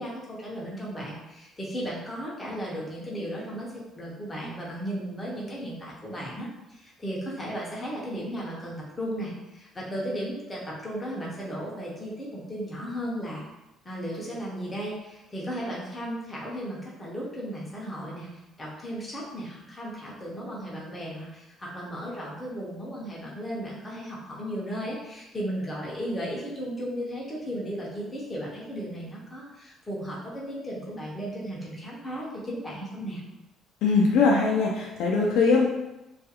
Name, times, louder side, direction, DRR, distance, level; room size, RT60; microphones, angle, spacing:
voice 1, 0.0-6.5 6.8-13.4 13.8-18.3 18.6-33.2, equal, 15° left, -5 dB, 0.6 m, -35 dB
voice 2, 33.8-35.7, left 4 dB, 70° left, -2 dB, 0.4 m, -21 dB
2.3 x 2.3 x 2.8 m, 0.96 s
cardioid pair, 165°, 0 cm